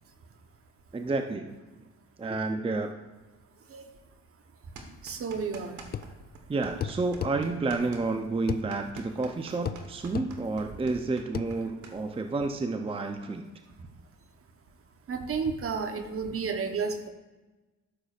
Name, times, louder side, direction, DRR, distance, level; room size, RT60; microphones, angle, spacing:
voice 1, 0.9-1.6 2.2-2.9 6.5-13.5, right 3 dB, 20° right, 6 dB, 0.5 m, -30 dB
sound 1, 4.8-6.1 6.4-12.0, right 4 dB, 70° right, 1.3 m, -46 dB
voice 2, 5.0-5.8 15.1-17.1, right 5 dB, 45° right, 7 dB, 1.0 m, -31 dB
sound 2, 5.9-6.1 6.8-7.4 8.5-8.7 9.6-9.8 10.1-10.3 11.3-11.5, left 8 dB, 35° left, 0.4 m, -32 dB
13.0 x 6.7 x 2.4 m, 1.2 s
cardioid pair, 90°, 30 cm